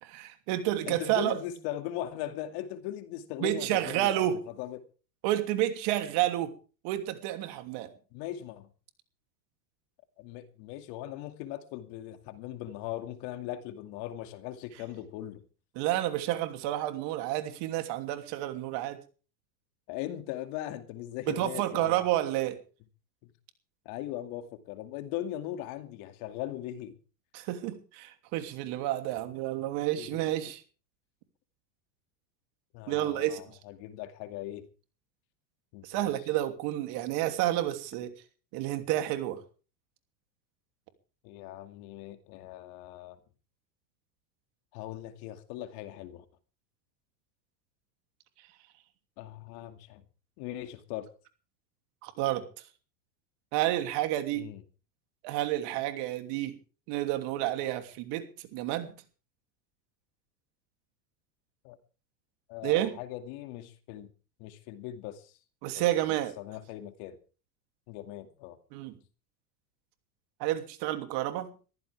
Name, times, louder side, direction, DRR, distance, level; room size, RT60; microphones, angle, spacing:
voice 1, 0.0-1.4 3.4-4.4 5.2-6.5 6.8-7.9 15.8-19.0 21.3-22.6 27.3-30.6 32.9-33.4 35.8-38.1 38.5-39.4 52.0-52.4 53.5-54.5 55.2-56.5 56.9-58.9 62.6-62.9 65.6-66.3 68.7-68.9 70.4-71.5, right 14 dB, 55° right, 7 dB, 3.0 m, -30 dB
voice 2, 0.9-4.8 8.1-8.7 10.2-15.4 19.9-22.0 23.2-23.3 23.8-27.0 30.0-30.2 32.7-34.7 35.7-36.2 41.2-43.2 44.7-46.2 49.2-50.0 50.4-51.1 54.4-54.6 61.6-61.8 62.5-64.1 64.4-65.3 65.8-65.9 66.4-67.2 67.9-68.6, left 13 dB, 55° left, 8 dB, 2.5 m, -39 dB
22.0 x 15.0 x 3.5 m, 0.37 s
supercardioid pair, 130°, 49 cm